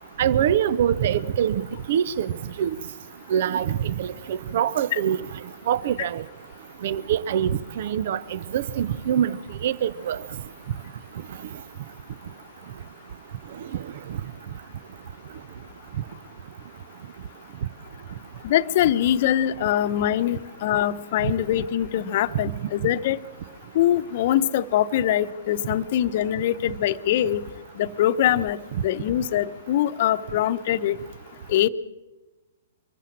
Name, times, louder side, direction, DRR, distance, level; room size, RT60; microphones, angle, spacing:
voice 1, 0.2-1.6 1.9-2.3 2.6-2.7 3.3-5.2 5.7-6.2 6.8-9.4 9.6-10.2, right 9 dB, 55° right, 0.7 m, -24 dB
voice 2, 18.4-23.2 23.7-27.4 27.8-28.6 28.8-31.0 31.5-31.7, left 11 dB, 50° left, 0.9 m, -23 dB
23.5 x 15.0 x 7.4 m
hypercardioid pair, 120°, 0 cm